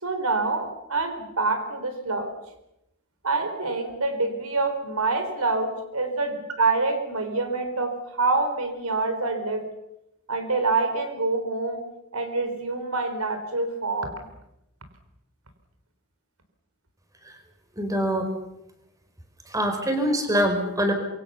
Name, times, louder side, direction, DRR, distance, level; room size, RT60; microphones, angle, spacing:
voice 1, 0.0-2.3 3.2-6.3 6.6-9.7 10.3-11.8 12.1-14.2, right 3 dB, 75° right, 7 dB, 4.6 m, -26 dB
voice 2, 17.8-18.3 19.5-20.9, equal, 15° right, 6 dB, 4.7 m, -24 dB
27.0 x 23.5 x 7.1 m, 0.87 s
head